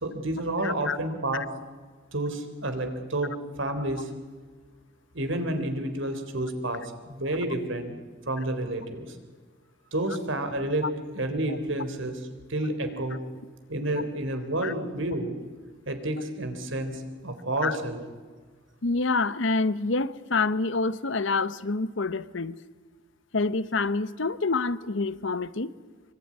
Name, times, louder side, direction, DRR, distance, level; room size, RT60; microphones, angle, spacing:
voice 1, 0.0-1.5 2.1-3.3 3.6-4.1 5.1-8.0 8.3-9.1 9.9-10.9 11.1-13.2 13.7-15.3 15.9-18.0, right 1 dB, 65° right, 3.7 m, -30 dB
voice 2, 0.6-1.0 1.3-1.4 10.8-10.9 11.5-11.6 14.6-14.7 17.6-17.8 18.8-22.6 23.3-25.7, left 3 dB, 65° left, 0.9 m, -27 dB
25.5 x 24.0 x 9.8 m
head